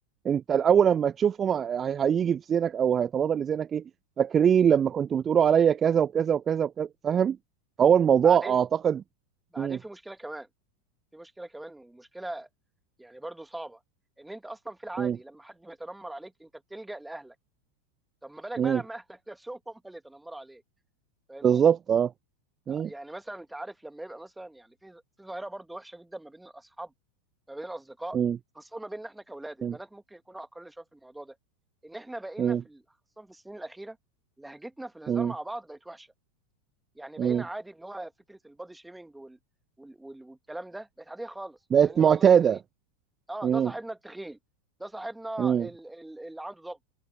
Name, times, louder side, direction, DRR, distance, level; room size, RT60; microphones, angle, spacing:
voice 1, 0.2-3.8 4.2-7.4 7.8-9.0 9.6-9.8 15.0-15.2 18.6-18.8 21.4-22.1 22.7-22.9 28.1-28.4 29.6-29.7 32.4-32.6 35.1-35.3 37.2-37.4 41.7-42.6 43.4-43.7 45.4-45.7, right 8 dB, 25° right, 0.9 m, -23 dB
voice 2, 8.2-8.6 9.5-10.5 11.1-12.5 13.0-13.8 14.2-17.4 18.2-20.6 21.3-21.6 22.7-26.9 27.5-28.2 28.6-31.4 31.8-32.8 33.2-34.0 34.4-36.1 37.0-39.4 39.8-42.6 43.3-44.4 44.8-46.8, right 1 dB, 5° right, 2.1 m, -41 dB
open air
figure-of-eight pair, 90°, 0 cm